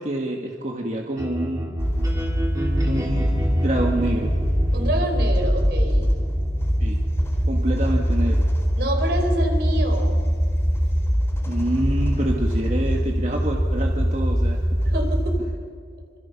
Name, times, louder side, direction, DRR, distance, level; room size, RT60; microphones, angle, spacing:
voice 1, 0.0-1.7 2.9-3.3 3.5-4.3 6.8-7.0 7.5-8.4 11.4-14.6, right 1 dB, 40° right, 1 dB, 1.7 m, -27 dB
sound 1, 1.1-11.2, right 1 dB, 20° right, 3.3 m, -32 dB
sound 2, 1.8-15.4, equal, 15° left, 4.0 m, -22 dB
voice 2, 4.7-6.1 8.8-10.2 14.8-15.7, right 1 dB, 65° right, 4 dB, 4.4 m, -27 dB
26.0 x 25.5 x 5.9 m, 2.2 s
head